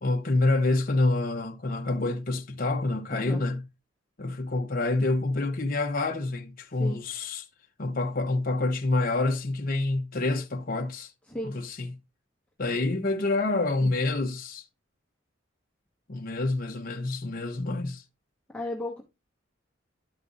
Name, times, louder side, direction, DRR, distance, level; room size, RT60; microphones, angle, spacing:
voice 1, 0.0-3.6 4.2-7.5 7.8-11.1 11.4-11.9 12.6-14.6 16.1-18.0, left 2 dB, 45° left, 0.8 m, -27 dB
voice 2, 3.1-3.4 6.8-7.0 11.3-11.6 13.8-13.9 18.5-19.0, left 1 dB, 5° left, 1.2 m, -34 dB
12.0 x 5.3 x 2.5 m
head